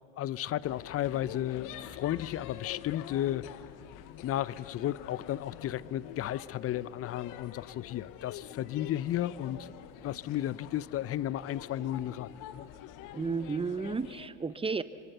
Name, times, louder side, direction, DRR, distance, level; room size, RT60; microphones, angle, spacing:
voice 1, 0.2-3.5 4.2-9.7 10.0-12.7, left 12 dB, 40° left, 19 dB, 0.7 m, -33 dB
sound 1, 0.6-14.3, left 11 dB, 65° left, 1.2 m, -46 dB
voice 2, 13.1-14.8, right 4 dB, 15° right, 14 dB, 0.9 m, -32 dB
25.0 x 24.0 x 6.9 m, 2.4 s
supercardioid pair, 80°, 34 cm